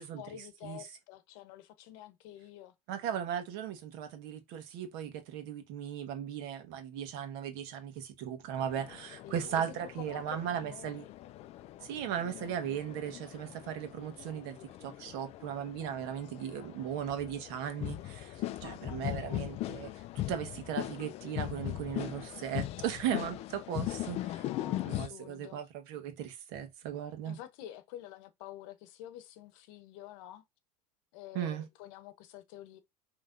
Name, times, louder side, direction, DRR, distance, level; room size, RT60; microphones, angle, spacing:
voice 1, 0.0-2.7 9.2-11.1 18.6-19.5 24.4-25.6 27.2-30.4 31.1-32.8, left 12 dB, 65° left, 0.9 m, -49 dB
voice 2, 2.9-11.0 11.8-24.5 24.8-27.4 31.3-31.7, right 9 dB, 60° right, 1.3 m, -37 dB
sound 1, 8.6-25.1, left 15 dB, 35° left, 0.4 m, -40 dB
5.7 x 3.1 x 2.6 m
supercardioid pair, 135°, 18 cm